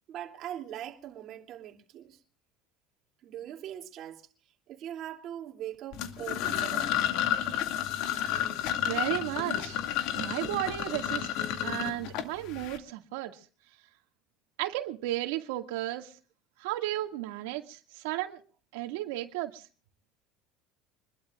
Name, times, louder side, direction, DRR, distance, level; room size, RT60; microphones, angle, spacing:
voice 1, 0.1-2.2 3.2-4.3 4.7-7.0, right 11 dB, 35° right, 3.0 m, -41 dB
sound 1, 5.9-12.8, left 11 dB, 55° left, 2.4 m, -31 dB
voice 2, 8.5-9.8 10.1-11.3 11.6-13.4 14.6-16.1 16.6-18.4 18.7-19.7, right 16 dB, 80° right, 2.2 m, -34 dB
26.0 x 21.5 x 2.6 m
cardioid pair, 175°, 0 cm